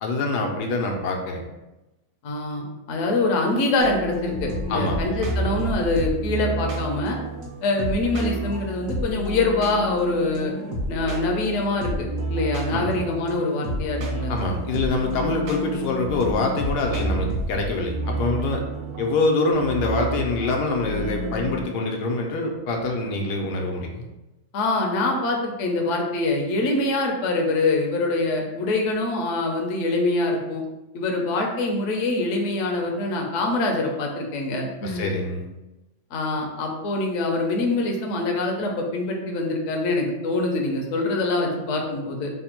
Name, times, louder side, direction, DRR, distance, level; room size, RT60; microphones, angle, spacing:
voice 1, 0.0-1.4 4.7-5.0 12.7-13.0 14.3-18.6 19.0-24.0 34.8-35.4, left 2 dB, 85° left, 2 dB, 1.2 m, -25 dB
voice 2, 2.2-7.2 7.6-10.5 10.9-14.3 24.5-30.6 30.9-35.1 36.1-42.3, left 2 dB, 60° left, 1 dB, 0.8 m, -24 dB
sound 1, 3.8-21.6, right 1 dB, 65° right, 1.0 m, -30 dB
3.3 x 2.1 x 4.3 m, 1.0 s
omnidirectional pair, 1.7 m